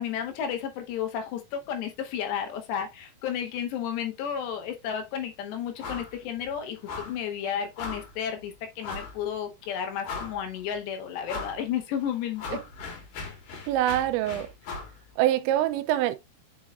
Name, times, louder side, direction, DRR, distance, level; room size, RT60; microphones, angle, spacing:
voice 1, 0.0-12.6, left 8 dB, 75° left, 3.0 m, -32 dB
sound 1, 5.8-6.1 6.4-6.5 6.9-7.2 7.8-8.1 8.8-9.2 9.6-9.7 10.0-10.6 11.3-11.6 12.0-14.9, left 4 dB, 60° left, 2.8 m, -38 dB
voice 2, 13.7-14.5 15.2-16.2, right 13 dB, 85° right, 2.9 m, -25 dB
8.8 x 5.4 x 2.4 m
omnidirectional pair, 5.2 m